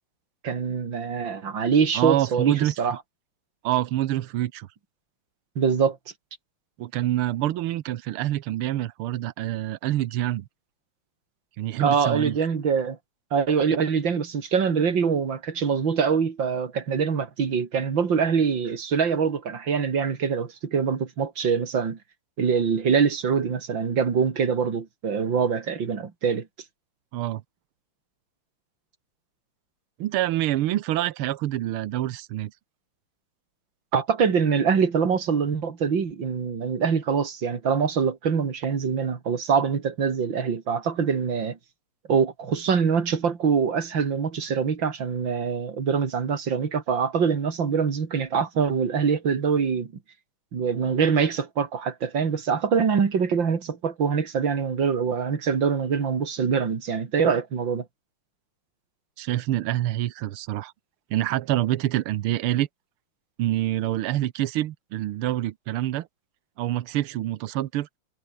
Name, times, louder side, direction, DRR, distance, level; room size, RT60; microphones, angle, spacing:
voice 1, 0.4-3.0 5.6-6.0 11.8-13.0 13.3-22.0 22.4-26.5 33.9-41.6 42.1-49.9 50.5-57.8, right 6 dB, 60° right, 3.2 m, -24 dB
voice 2, 2.0-2.7 3.6-4.7 6.8-10.5 11.6-12.4 27.1-27.4 30.0-32.5 59.2-60.7 61.1-62.7 63.4-66.1 66.6-67.9, right 14 dB, 80° right, 1.8 m, -26 dB
omnidirectional pair, 2.4 m